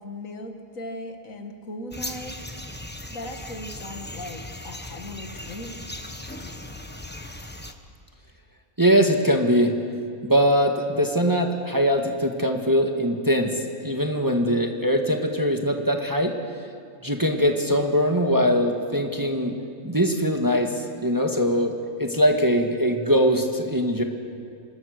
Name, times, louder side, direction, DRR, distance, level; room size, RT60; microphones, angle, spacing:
voice 1, 0.0-2.3 3.1-5.9, left 1 dB, 65° left, 5 dB, 2.1 m, -38 dB
sound 1, 1.9-7.7, left 1 dB, 10° left, 1.0 m, -38 dB
voice 2, 8.8-9.8 10.2-16.3 17.0-19.6 19.8-24.0, equal, 15° right, 2 dB, 1.6 m, -22 dB
26.5 x 20.5 x 6.6 m, 2.4 s
omnidirectional pair, 1.5 m